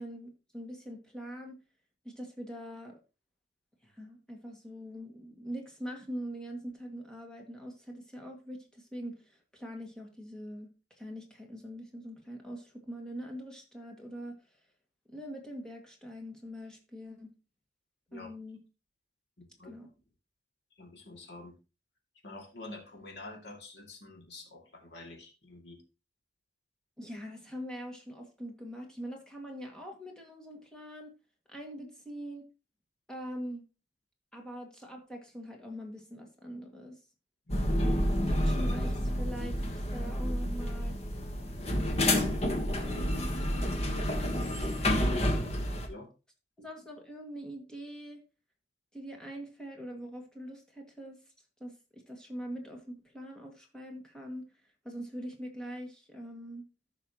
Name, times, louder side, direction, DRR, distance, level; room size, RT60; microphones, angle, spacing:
voice 1, 0.0-1.6 2.0-3.0 3.8-14.6 15.1-17.3 18.1-18.6 19.7-19.9 27.0-31.1 31.5-32.4 33.1-33.6 34.3-37.0 37.8-40.9 41.7-42.2 43.6-45.2 46.6-48.2 48.9-51.2 51.6-54.5 54.8-56.7, equal, 5° left, 1 dB, 1.9 m, -43 dB
voice 2, 19.4-19.7 20.8-21.6 22.2-25.8 37.5-37.9 45.9-46.1, left 2 dB, 70° left, 1 dB, 2.4 m, -47 dB
sound 1, 37.5-45.9, left 1 dB, 35° left, 1.3 m, -29 dB
13.5 x 5.7 x 3.0 m, 0.30 s
head